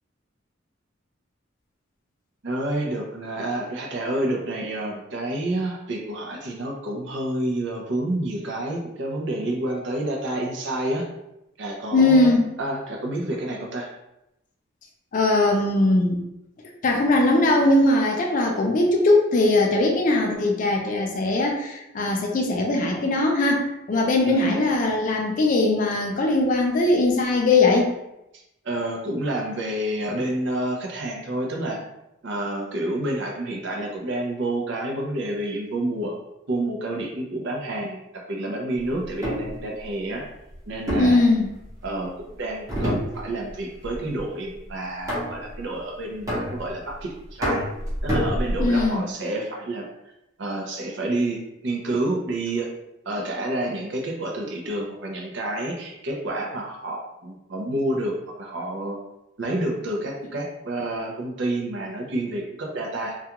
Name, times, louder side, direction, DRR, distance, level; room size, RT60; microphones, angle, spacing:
voice 1, 2.4-11.1 11.6-13.9 24.3-24.6 28.6-31.8 32.2-36.1 36.5-40.3 40.7-41.2 41.8-47.6 48.0-49.9 50.4-52.7 53.1-59.0 59.4-63.2, right 1 dB, 60° right, 0 dB, 0.5 m, -29 dB
voice 2, 11.9-12.5 15.1-16.2 16.8-27.9 41.0-41.5 48.6-49.1, left 2 dB, 40° left, 0 dB, 0.3 m, -20 dB
sound 1, 39.0-39.5 40.9-41.9 42.7-43.5 43.8-44.2 45.1-45.6 46.3-46.9 47.4-48.9, equal, 15° right, 0.8 m, -27 dB
2.3 x 2.3 x 2.8 m, 0.87 s
head